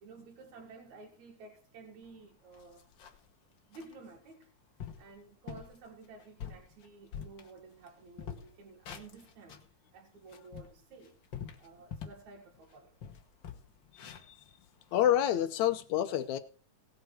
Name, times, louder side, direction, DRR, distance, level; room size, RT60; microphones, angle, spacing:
voice 1, 0.0-2.9 3.7-4.5 5.0-9.6 9.9-11.2 11.6-13.0 14.0-14.1 15.2-15.5, right 4 dB, 60° right, 3.1 m, -53 dB
sound 1, 2.1-2.2 2.5-3.3 3.7-3.9 4.4-4.5 4.8-5.1 5.5-5.8 6.2-7.9 8.2-9.7 10.1-12.3 12.6-12.7 13.0-15.2, left 8 dB, 55° left, 1.3 m, -45 dB
voice 2, 14.9-16.4, left 11 dB, 70° left, 1.9 m, -28 dB
17.5 x 7.8 x 4.6 m
omnidirectional pair, 3.8 m